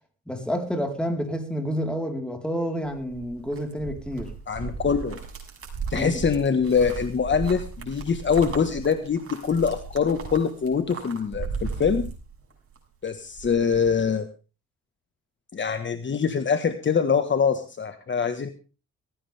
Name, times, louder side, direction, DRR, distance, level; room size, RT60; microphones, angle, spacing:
voice 1, 0.3-4.3 6.0-6.2, equal, 5° left, 4 dB, 4.4 m, -29 dB
sound 1, 2.8-12.8 13.1-14.0, right 5 dB, 45° right, 6.6 m, -36 dB
voice 2, 4.5-5.2 5.9-12.0 13.0-14.3 15.5-18.5, left 6 dB, 40° left, 9 dB, 1.7 m, -24 dB
19.0 x 17.0 x 3.6 m, 0.34 s
cardioid pair, 90°, 30 cm